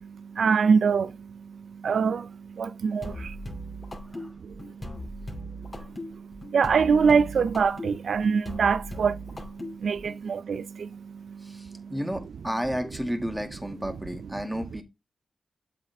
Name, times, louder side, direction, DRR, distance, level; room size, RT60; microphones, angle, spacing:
voice 1, 0.0-12.0, right 6 dB, 80° right, 0.3 m, -26 dB
sound 1, 3.0-10.2, equal, 35° left, 2.4 m, -39 dB
voice 2, 11.4-14.8, equal, 5° right, 1.9 m, -32 dB
7.7 x 5.5 x 3.4 m
cardioid pair, 50°, 0 cm